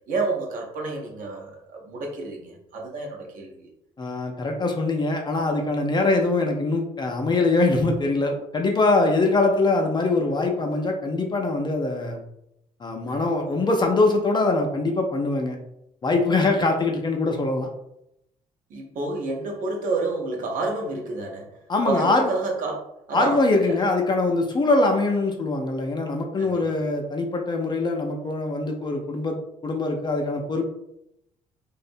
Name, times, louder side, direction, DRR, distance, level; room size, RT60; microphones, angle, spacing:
voice 1, 0.1-3.7 13.1-13.3 16.4-16.5 18.7-21.5 21.9-23.8 26.4-26.6, right 3 dB, 50° right, 0.6 m, -29 dB
voice 2, 4.0-12.2 12.8-15.6 16.0-17.7 21.7-22.3 23.1-29.4 29.6-30.6, left 2 dB, 25° left, 0.4 m, -23 dB
2.5 x 2.1 x 2.5 m
figure-of-eight pair, 45°, 18 cm